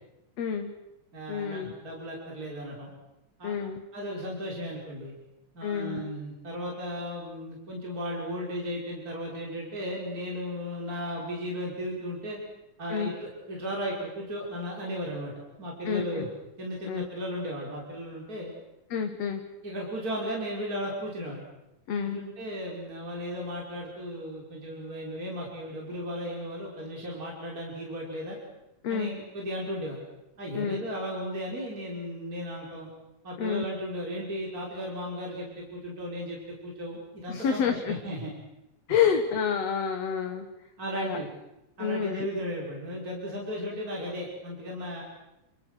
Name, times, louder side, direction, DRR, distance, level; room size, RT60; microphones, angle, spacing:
voice 1, 0.4-0.7 1.3-1.7 3.4-3.8 5.6-6.0 12.9-13.1 15.9-16.3 16.9-17.0 18.9-19.4 21.9-22.2 28.8-29.1 30.5-30.8 33.4-33.7 37.3-38.0 38.9-40.5 40.9-41.2 41.8-42.3, left 7 dB, 60° left, 5 dB, 2.7 m, -28 dB
voice 2, 1.1-2.9 3.4-3.6 3.9-5.1 5.5-12.4 12.8-15.3 15.6-16.3 16.6-18.5 19.6-21.4 22.0-28.4 28.9-30.0 30.4-32.9 33.2-38.3 40.8-41.3 41.8-45.0, equal, 25° right, -3 dB, 5.7 m, -35 dB
28.5 x 28.0 x 6.5 m, 0.92 s
omnidirectional pair, 3.5 m